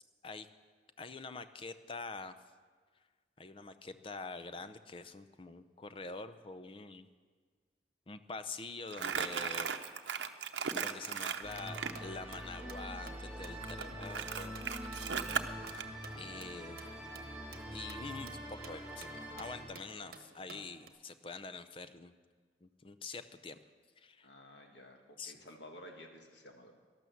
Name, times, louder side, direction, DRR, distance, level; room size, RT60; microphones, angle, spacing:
voice 1, 1.0-2.3 3.4-7.1 8.1-9.7 10.7-14.5 14.8-15.3 16.2-16.8 17.7-22.1 22.6-23.6 24.0-24.3 25.2-25.3, left 3 dB, 30° left, 11 dB, 0.5 m, -46 dB
Crumpling crinkling, 8.9-12.0 13.6-15.9, right 6 dB, 80° right, 0.7 m, -37 dB
sound 1, 11.2-20.9, right 5 dB, 55° right, 1.1 m, -55 dB
sound 2, 11.4-19.6, right 1 dB, 10° right, 5.4 m, -45 dB
voice 2, 24.2-26.7, left 1 dB, 75° left, 3 dB, 1.9 m, -53 dB
12.5 x 12.0 x 7.1 m, 1.5 s
head